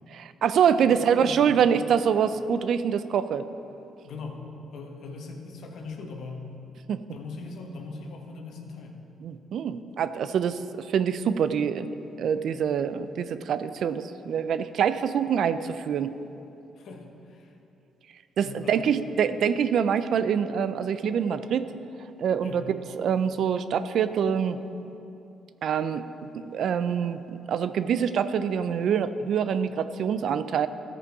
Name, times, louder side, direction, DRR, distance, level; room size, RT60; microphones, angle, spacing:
voice 1, 0.1-3.5 6.9-7.0 9.2-11.9 12.2-16.1 18.4-21.7 22.2-24.6 25.6-26.0 26.3-30.7, right 7 dB, 65° right, 12 dB, 0.4 m, -25 dB
voice 2, 0.8-1.7 4.0-4.4 4.7-6.5 7.1-9.0 16.8-17.5 18.4-18.9 22.4-22.7, left 4 dB, 70° left, 2 dB, 1.1 m, -40 dB
14.0 x 5.1 x 4.7 m, 2.9 s
cardioid pair, 90°, 0 cm